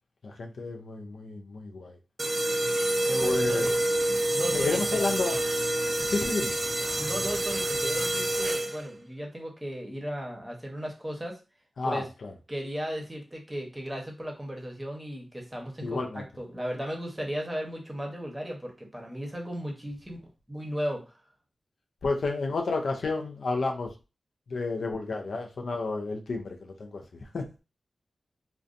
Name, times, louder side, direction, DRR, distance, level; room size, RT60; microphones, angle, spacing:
voice 1, 0.2-2.0 3.2-3.7 4.5-5.4 6.1-6.5 11.8-12.3 15.8-16.3 22.0-23.9 24.5-27.5, left 3 dB, 80° left, 2 dB, 0.4 m, -31 dB
sound 1, 2.2-9.0, right 1 dB, 35° right, 0.5 m, -27 dB
voice 2, 3.0-3.8 4.3-5.0 7.0-11.4 11.8-12.1 12.5-20.2 20.5-21.1, equal, 15° right, 1 dB, 0.9 m, -36 dB
2.5 x 2.2 x 2.5 m, 0.30 s
cardioid pair, 55°, 0 cm